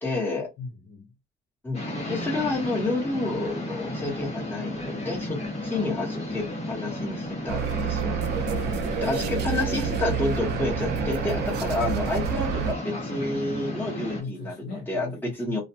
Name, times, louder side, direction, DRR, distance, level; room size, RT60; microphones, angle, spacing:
voice 1, 0.0-0.5 1.6-8.2 9.0-15.6, left 2 dB, 10° left, 1.1 m, -30 dB
voice 2, 0.6-1.1 8.6-9.0 14.2-15.6, left 3 dB, 50° left, 0.9 m, -39 dB
sound 1, 1.7-14.2, left 1 dB, 30° left, 1.1 m, -33 dB
sound 2, 7.5-12.7, right 7 dB, 55° right, 0.5 m, -28 dB
2.5 x 2.2 x 2.7 m
cardioid pair, 135°, 21 cm